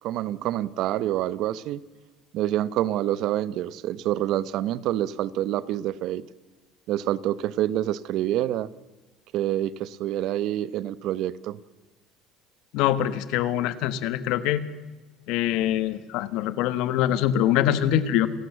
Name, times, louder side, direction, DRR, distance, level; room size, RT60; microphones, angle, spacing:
voice 1, 0.0-1.8 2.3-6.2 6.9-8.7 9.3-11.6, right 13 dB, 65° right, 18 dB, 0.9 m, -27 dB
voice 2, 12.7-14.6 15.3-18.3, left 11 dB, 75° left, 14 dB, 1.4 m, -24 dB
28.5 x 12.0 x 8.0 m, 1.2 s
cardioid pair, 110°, 0 cm